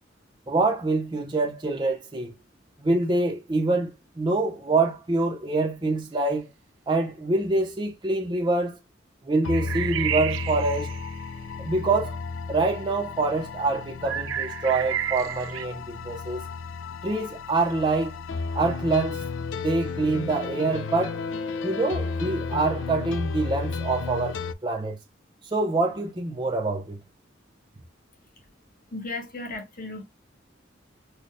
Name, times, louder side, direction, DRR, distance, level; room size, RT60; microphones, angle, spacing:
voice 1, 0.5-2.3 2.8-6.5 6.9-8.7 9.2-10.9 11.6-12.2 12.5-16.4 17.0-18.1 18.5-19.2 19.6-21.2 21.6-25.0 25.5-27.0, right 3 dB, 25° right, 0.6 m, -25 dB
sound 1, 9.4-24.5, left 4 dB, 75° left, 0.4 m, -33 dB
sound 2, 9.5-11.3 14.0-15.7, right 11 dB, 75° right, 0.3 m, -31 dB
voice 2, 28.9-30.0, left 2 dB, 45° left, 1.2 m, -35 dB
4.1 x 2.2 x 3.1 m
head